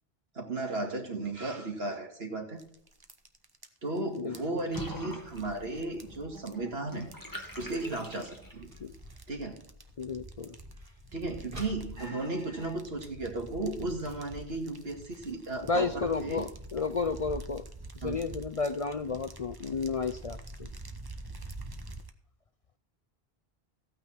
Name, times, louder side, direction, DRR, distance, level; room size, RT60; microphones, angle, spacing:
voice 1, 0.3-2.6 3.8-7.1 7.6-8.7 9.3-9.6 11.1-16.5 18.0-18.2, right 2 dB, 80° right, 2 dB, 2.7 m, -35 dB
sound 1, 2.6-22.1, right 2 dB, 25° right, 1.0 m, -47 dB
Water / Bathtub (filling or washing), 4.7-8.8, left 1 dB, 20° left, 2.2 m, -44 dB
sound 2, 8.4-13.7 14.0-14.1 14.3-14.7 15.2-15.3 15.8-15.9 16.2-16.3 16.7-16.8, left 1 dB, 60° right, 4.6 m, -53 dB
voice 2, 10.0-10.6 15.6-17.7 17.9-20.7, left 4 dB, 45° left, 9 dB, 0.5 m, -32 dB
15.5 x 9.1 x 4.4 m, 0.66 s
omnidirectional pair, 1.0 m